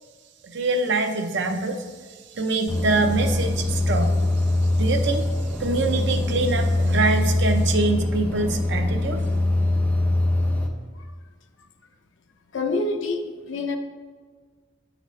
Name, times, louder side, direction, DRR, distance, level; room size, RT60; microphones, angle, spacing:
voice 1, 0.5-1.8 2.3-4.1 4.8-5.3 5.6-9.2, right 3 dB, 65° right, 6 dB, 0.6 m, -24 dB
sound 1, 2.7-10.7, left 2 dB, 10° left, 0.6 m, -23 dB
voice 2, 12.5-13.8, left 3 dB, 75° left, 6 dB, 0.6 m, -26 dB
9.0 x 3.9 x 3.1 m, 1.5 s
head